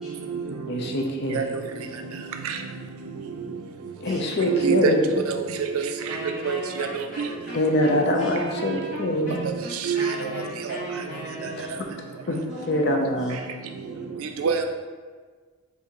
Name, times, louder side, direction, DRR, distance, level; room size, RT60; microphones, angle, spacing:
voice 1, 0.0-0.8 4.0-4.7 7.5-8.3 11.5-11.8 12.5-14.1, right 1 dB, ahead, -9 dB, 1.2 m, -43 dB
voice 2, 0.7-1.7 4.0-5.2 7.5-9.4 11.5-11.7 12.3-13.4, left 1 dB, 50° left, 2 dB, 0.5 m, -24 dB
voice 3, 1.3-1.7 2.4-2.6 4.5-4.9 5.3-5.4 6.5-7.3 9.4-9.5 9.8-10.4 10.7-10.8 14.4-14.6, right 6 dB, 75° right, 6 dB, 0.4 m, -25 dB
Wind instrument woodwind instrument, 6.1-11.9, left 1 dB, 35° left, 1.5 m, -37 dB
4.4 x 2.7 x 3.7 m, 1.5 s
head